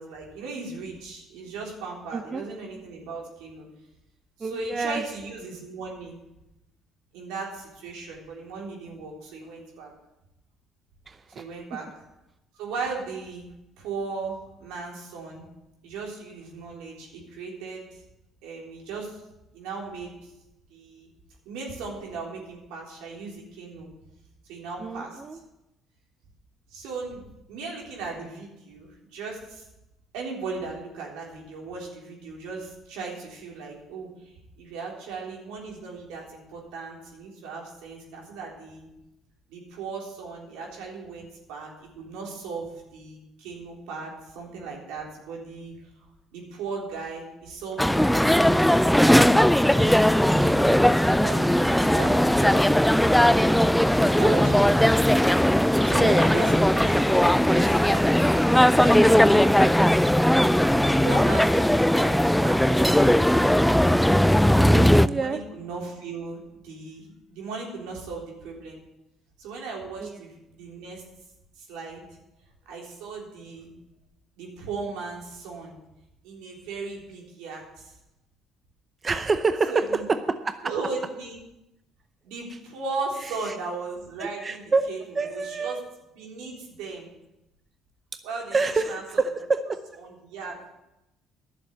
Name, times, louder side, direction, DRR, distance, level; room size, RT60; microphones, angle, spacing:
voice 1, 0.0-3.7 4.4-6.2 7.1-9.9 11.3-11.9 12.5-13.5 13.8-15.4 15.8-18.0 18.4-19.2 19.5-20.1 20.7-21.1 21.5-23.9 24.5-25.2 26.7-29.6 30.1-34.3 34.6-38.9 39.5-45.8 46.3-55.1 55.8-58.2 58.7-59.7 60.8-63.7 64.5-66.4 66.6-68.8 69.4-71.0 71.6-72.0 72.7-73.7 74.4-75.8 76.2-77.9 79.7-80.0 80.6-81.4 82.2-85.0 85.2-85.8 86.2-87.1 88.2-89.0 89.3-89.4 90.0-90.7, right 4 dB, 90° right, -1 dB, 3.7 m, -37 dB
voice 2, 2.1-2.4 4.4-5.0 11.1-11.4 24.8-25.4 64.5-64.8 65.0-65.4 70.0-70.2 79.0-79.8 80.4-80.6 83.5-83.6 84.2-84.9 85.2-85.8 88.5-89.8, right 4 dB, 30° right, 9 dB, 0.7 m, -27 dB
sound 1, 47.8-65.1, equal, 5° left, 0.3 m, -19 dB
11.0 x 7.3 x 8.1 m, 0.92 s
cardioid pair, 90°, 0 cm